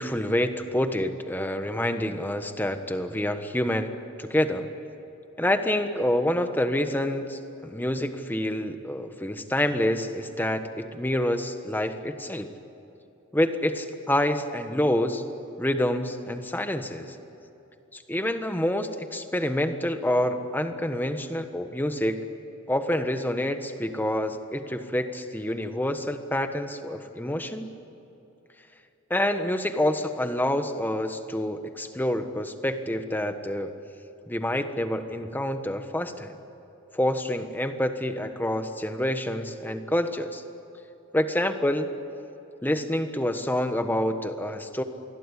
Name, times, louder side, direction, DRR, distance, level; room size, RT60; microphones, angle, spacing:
voice 1, 0.0-3.9 4.2-4.7 5.4-12.5 13.3-15.2 15.6-17.1 17.9-22.2 22.7-27.7 29.1-33.7 34.3-36.4 36.9-40.4 41.1-41.9 42.6-44.8, left 1 dB, 10° left, 8 dB, 1.3 m, -27 dB
27.5 x 21.5 x 10.0 m, 3.0 s
head